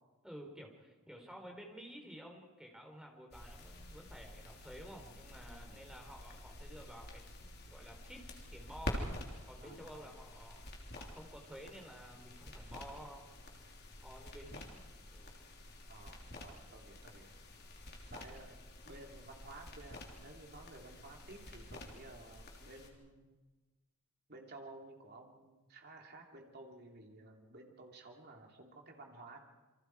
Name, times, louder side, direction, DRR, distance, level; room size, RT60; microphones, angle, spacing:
voice 1, 0.2-9.2 9.4-10.6 10.9-13.3 14.0-14.8 15.1-15.3, equal, 5° right, 2 dB, 3.6 m, -52 dB
sound 1, 3.3-22.9, left 1 dB, 50° left, 3.3 m, -48 dB
voice 2, 5.5-5.8 9.6-10.1 15.9-17.3 18.1-18.6 18.8-23.5 24.3-29.4, right 2 dB, 45° right, 1 dB, 3.2 m, -54 dB
28.0 x 24.5 x 4.8 m, 1.2 s
head